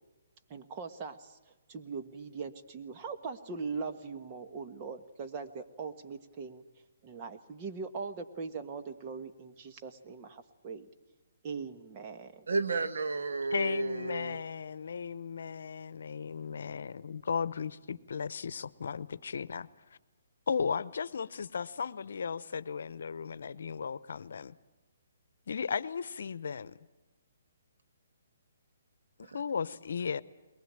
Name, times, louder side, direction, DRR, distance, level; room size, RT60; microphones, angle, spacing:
voice 1, 0.5-1.4 1.7-6.6 7.0-10.9 11.4-12.5, right 5 dB, 30° right, 7 dB, 1.5 m, -41 dB
voice 2, 12.5-14.4 29.3-29.4, right 3 dB, 85° right, 10 dB, 1.6 m, -32 dB
voice 3, 13.5-19.7 20.5-24.5 25.5-26.8 29.2-30.2, left 6 dB, 70° left, 17 dB, 0.9 m, -35 dB
22.0 x 19.5 x 8.9 m, 1.1 s
hypercardioid pair, 160°, 0 cm